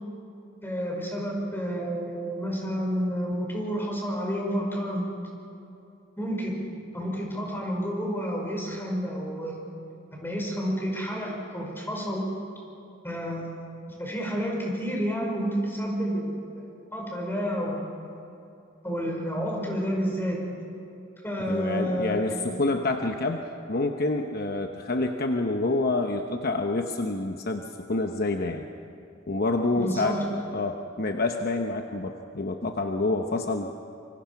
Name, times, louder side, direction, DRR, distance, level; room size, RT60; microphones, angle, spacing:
voice 1, 0.6-5.1 6.2-6.6 6.9-9.6 10.1-12.2 13.0-13.5 14.0-17.9 18.8-20.5 21.2-22.5 29.7-30.3, equal, 10° left, -1 dB, 5.3 m, -30 dB
voice 2, 21.4-28.7 29.3-30.2 30.5-33.7, left 2 dB, 50° left, 4 dB, 0.9 m, -27 dB
26.5 x 25.0 x 5.8 m, 2.7 s
head